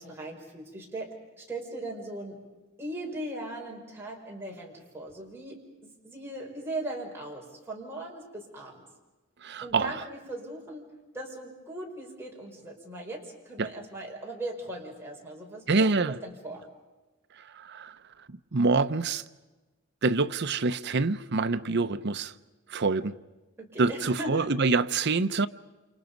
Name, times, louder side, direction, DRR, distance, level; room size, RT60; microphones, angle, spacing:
voice 1, 0.0-2.4 2.8-8.8 9.6-16.6 21.6-21.9 23.6-24.5, right 1 dB, 10° right, 5.1 m, -39 dB
voice 2, 9.4-10.0 13.6-13.7 15.7-16.2 17.4-18.0 18.3-19.2 20.0-22.3 22.7-23.1 23.8-25.5, right 3 dB, 55° right, 0.8 m, -26 dB
29.0 x 28.5 x 5.3 m
head